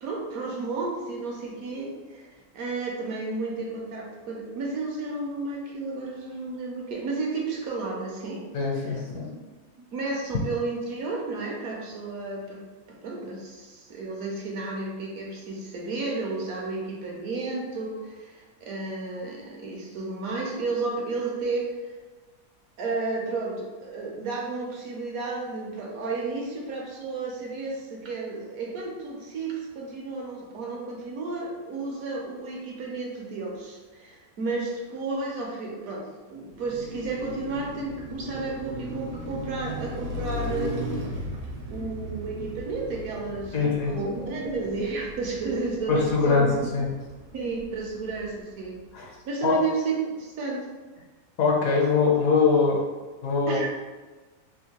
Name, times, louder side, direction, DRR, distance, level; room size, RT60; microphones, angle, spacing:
voice 1, 0.0-2.3 2.5-8.4 8.9-9.3 9.9-12.6 13.0-22.0 22.8-40.8 41.7-46.7 47.3-50.7 53.5-53.7, right 3 dB, 70° right, -1 dB, 1.0 m, -32 dB
voice 2, 8.5-9.3 43.5-43.9 45.9-46.9 48.9-49.1 49.4-49.6 51.4-52.8 53.2-53.7, left 4 dB, 65° left, -2 dB, 1.0 m, -22 dB
Car passing by, 36.4-48.7, equal, 85° right, 1.3 m, -37 dB
3.6 x 2.5 x 2.8 m, 1.3 s
omnidirectional pair, 1.7 m